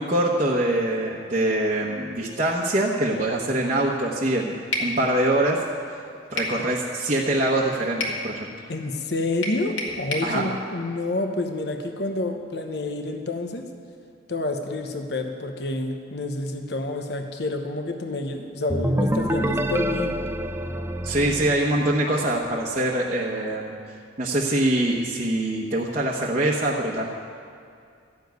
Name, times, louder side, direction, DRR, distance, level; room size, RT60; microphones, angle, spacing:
voice 1, 0.0-5.6 6.3-8.5 10.2-10.5 21.0-23.7 24.2-27.1, right 1 dB, 35° right, -4 dB, 1.0 m, -24 dB
sound 1, 4.7-4.9 6.4-6.6 8.0-8.2 9.4-10.3, left 2 dB, 85° left, 2.0 m, -28 dB
voice 2, 8.7-13.7 14.3-20.2, left 2 dB, 60° left, 5 dB, 1.0 m, -28 dB
sound 2, 18.7-22.4, right 1 dB, 10° right, 0.4 m, -27 dB
14.0 x 7.2 x 9.4 m, 2.3 s
head